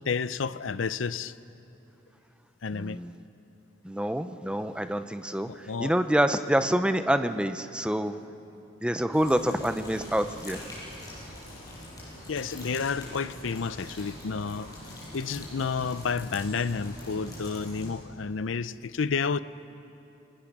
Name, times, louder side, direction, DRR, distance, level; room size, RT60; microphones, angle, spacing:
voice 1, 0.1-1.3 2.6-3.0 5.5-5.9 12.3-14.7 15.1-19.4, left 5 dB, 85° left, 15 dB, 0.6 m, -30 dB
voice 2, 2.7-3.1 3.8-5.5 5.8-8.2 8.8-10.6, equal, 5° right, 10 dB, 0.6 m, -26 dB
sound 1, 9.1-17.9, left 1 dB, 20° left, 6.7 m, -43 dB
29.0 x 20.5 x 6.1 m, 2.8 s
head